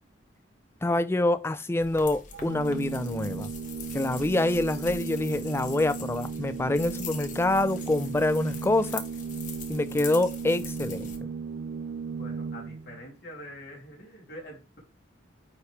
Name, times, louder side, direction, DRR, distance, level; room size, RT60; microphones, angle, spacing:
voice 1, 0.8-3.5 3.9-9.0 9.7-11.1, left 2 dB, 15° left, 0.3 m, -26 dB
sound 1, 1.8-11.2, left 6 dB, 40° left, 1.0 m, -43 dB
Organ, 2.3-13.0, right 5 dB, 60° right, 0.4 m, -36 dB
voice 2, 12.1-14.8, equal, 60° left, 2.6 m, -45 dB
9.5 x 3.2 x 3.3 m
head